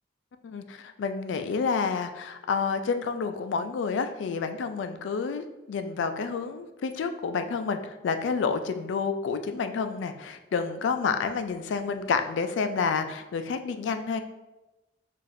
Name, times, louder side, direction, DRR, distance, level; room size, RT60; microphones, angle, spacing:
voice 1, 0.4-14.2, left 5 dB, 90° left, 8 dB, 0.3 m, -29 dB
5.6 x 2.5 x 2.5 m, 1.0 s
head